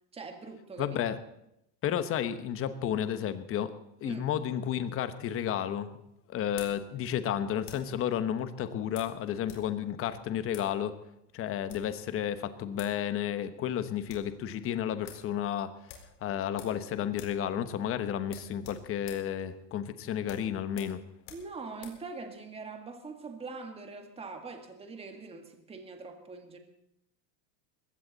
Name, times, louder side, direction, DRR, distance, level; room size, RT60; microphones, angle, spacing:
voice 1, 0.1-1.0 4.0-4.2 21.3-26.6, right 4 dB, 10° right, 5 dB, 1.7 m, -43 dB
voice 2, 0.8-1.2 1.8-3.7 4.0-5.9 6.3-10.9 11.3-15.7 16.2-21.0, left 10 dB, 30° left, 11 dB, 1.1 m, -32 dB
sound 1, 5.1-8.0 8.9-9.7 9.9-10.0 10.5-10.7 11.5-12.0 12.5-12.6 12.8-13.0 13.3-13.4 13.7-14.3 14.7-14.8 15.0-15.3 15.9-16.8 17.1-17.4 17.7-17.8 18.2-22.0, left 8 dB, 65° left, 4.4 m, -50 dB
21.0 x 16.5 x 4.1 m, 0.82 s
supercardioid pair, 150°, 48 cm